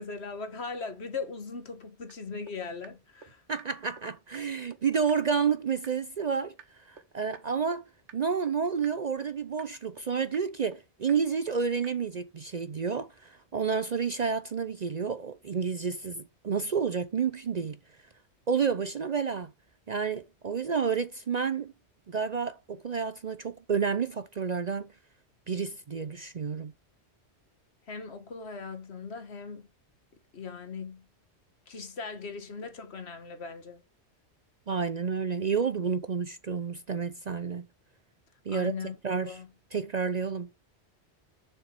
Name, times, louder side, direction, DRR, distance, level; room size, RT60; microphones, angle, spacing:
voice 1, 0.0-3.4 27.9-29.7 30.3-31.0 31.7-33.8 38.5-39.5, left 4 dB, 65° left, 1.7 m, -39 dB
sound 1, 2.1-2.2 2.5-2.6 2.8-2.9 3.2-3.3 3.6-3.7 4.0-4.1 4.3-4.4 4.7-4.8 5.1-5.2 5.5-5.6 5.8-5.9 6.2-6.3 6.6-6.7 7.0-7.1 7.3-7.4 7.7-7.8 8.1-8.2 8.5-8.6 8.8-8.9 9.2-9.3 9.6-9.7 10.0-10.1 10.3-10.4 10.7-10.8 11.1-11.2 11.5-11.6 11.8-11.9, right 7 dB, 80° right, 1.3 m, -48 dB
voice 2, 3.5-7.8 8.1-17.8 18.5-19.5 19.9-21.7 22.1-24.9 25.5-26.7 34.7-37.7 38.5-38.7 39.0-39.4 39.7-40.5, right 6 dB, 45° right, 0.6 m, -30 dB
7.2 x 5.3 x 6.7 m
omnidirectional pair, 1.2 m